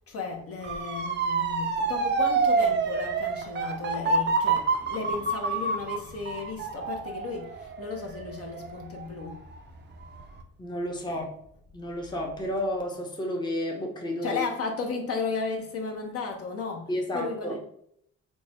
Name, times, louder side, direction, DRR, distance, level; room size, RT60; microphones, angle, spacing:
voice 1, 0.1-9.4 11.1-11.2 14.2-17.6, left 4 dB, 50° left, 2 dB, 0.8 m, -34 dB
Motor vehicle (road) / Siren, 0.6-9.5 10.0-10.4, right 4 dB, 35° right, 0.6 m, -28 dB
voice 2, 10.6-11.3 11.7-14.4 16.9-17.6, left 1 dB, 15° left, 1 dB, 0.8 m, -31 dB
3.4 x 2.0 x 4.2 m, 0.69 s
cardioid pair, 90°, 30 cm